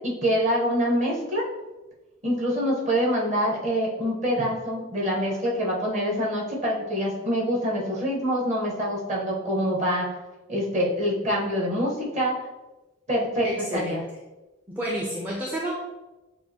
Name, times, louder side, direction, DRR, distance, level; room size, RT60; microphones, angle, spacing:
voice 1, 0.0-1.4 2.2-10.1 10.5-12.4 13.1-13.5 13.7-14.0, equal, 35° right, -3 dB, 1.1 m, -25 dB
voice 2, 13.4-14.0 14.7-15.7, right 1 dB, 10° right, -4 dB, 0.5 m, -30 dB
6.7 x 2.5 x 2.8 m, 1.1 s
head